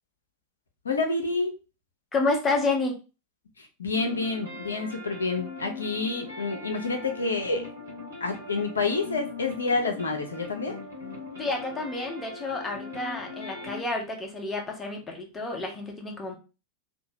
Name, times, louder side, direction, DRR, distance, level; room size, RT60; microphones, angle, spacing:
voice 1, 0.8-1.5 3.6-7.7 8.2-10.8, left 3 dB, 70° left, 4 dB, 0.6 m, -28 dB
voice 2, 2.1-2.9 11.4-16.4, left 3 dB, 15° left, 2 dB, 0.8 m, -29 dB
sound 1, 3.9-13.8, left 3 dB, 75° right, 1.2 m, -40 dB
2.8 x 2.2 x 2.7 m, 0.31 s
figure-of-eight pair, 90°, 0 cm